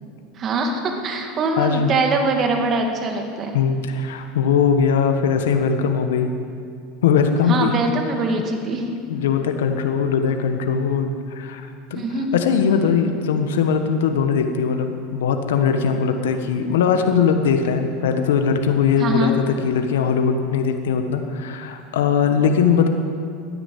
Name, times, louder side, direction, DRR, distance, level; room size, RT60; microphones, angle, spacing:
voice 1, 0.4-3.5 7.5-9.0 11.9-12.4 19.0-19.3, right 2 dB, 35° right, 3 dB, 2.1 m, -23 dB
voice 2, 1.6-1.9 3.5-6.3 7.0-7.7 9.1-12.0 12.3-22.9, left 6 dB, 85° left, 5 dB, 1.3 m, -20 dB
12.5 x 10.0 x 8.5 m, 2.4 s
supercardioid pair, 115°, 0 cm